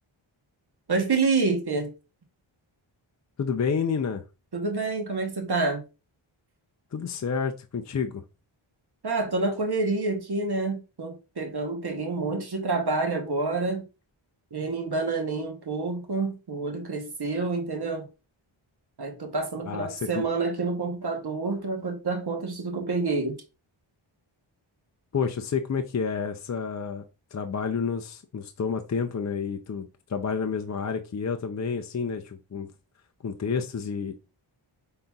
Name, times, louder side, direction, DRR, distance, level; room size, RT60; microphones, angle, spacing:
voice 1, 0.9-1.9 4.5-5.8 9.0-13.9 14.5-18.1 19.0-23.4, right 3 dB, 50° right, 1.0 m, -28 dB
voice 2, 3.4-4.2 6.9-8.2 19.7-20.3 25.1-27.0 27.3-32.7 33.2-34.1, left 6 dB, 35° left, 0.5 m, -29 dB
5.5 x 3.8 x 2.3 m
wide cardioid pair, 100°, 50 cm